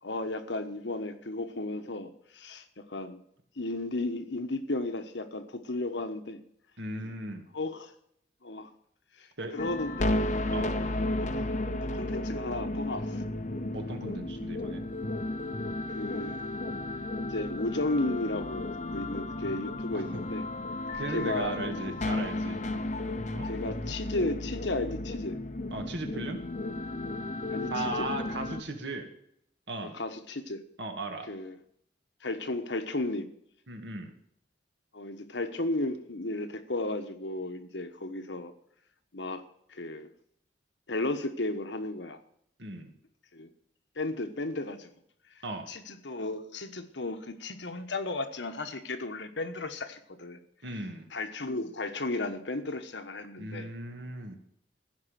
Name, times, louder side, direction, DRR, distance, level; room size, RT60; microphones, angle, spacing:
voice 1, 0.0-3.2 3.6-6.4 7.0-7.1 7.5-7.9 8.4-8.7 9.2-9.3 9.5-10.2 11.2-11.5 11.8-13.2 15.9-16.5 17.3-20.5 21.1-21.6 22.7-22.8 23.4-25.4 27.5-28.1 29.8-30.6 31.3-31.6 32.2-33.3 34.9-38.5 39.1-39.4 39.7-40.1 40.9-42.2 43.3-43.5 44.0-44.9 45.7-50.4 51.1-53.7, left 2 dB, 70° left, 8 dB, 1.3 m, -34 dB
voice 2, 6.8-7.5 9.4-9.5 10.5-10.8 13.7-14.8 19.9-20.2 20.9-22.6 23.3-23.5 25.7-26.4 27.7-29.1 29.7-30.0 30.8-31.3 33.7-34.1 42.6-42.9 45.4-45.7 50.6-51.1 53.4-54.4, right 2 dB, 65° right, 4 dB, 2.1 m, -37 dB
sound 1, 9.6-28.6, left 2 dB, 40° left, 0.8 m, -33 dB
15.5 x 5.4 x 9.2 m, 0.71 s
head